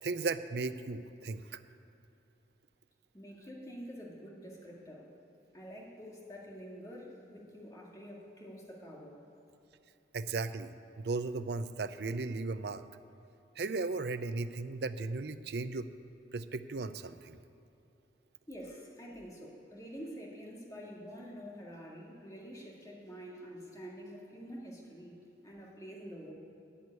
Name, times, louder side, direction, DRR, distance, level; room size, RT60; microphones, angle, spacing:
voice 1, 0.0-1.6 10.1-10.7 11.0-12.8 13.6-15.9 16.3-17.4, right 3 dB, 65° right, 12 dB, 0.5 m, -36 dB
voice 2, 3.1-5.1 5.5-9.2 18.5-26.3, equal, 20° left, -3 dB, 2.1 m, -47 dB
12.5 x 6.3 x 9.6 m, 2.8 s
head